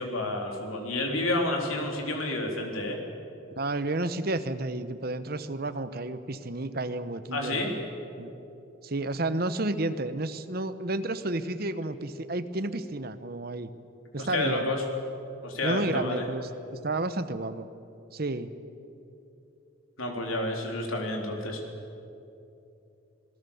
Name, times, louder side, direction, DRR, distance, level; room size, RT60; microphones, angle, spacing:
voice 1, 0.0-3.0 7.3-7.7 14.2-14.8 15.4-16.2 20.0-21.6, left 2 dB, 90° left, 1 dB, 3.7 m, -30 dB
voice 2, 3.5-7.6 8.2-8.3 8.8-13.7 14.1-14.7 15.6-17.7 18.1-18.5, right 2 dB, 50° right, 12 dB, 1.0 m, -31 dB
26.5 x 18.5 x 7.2 m, 2.8 s
head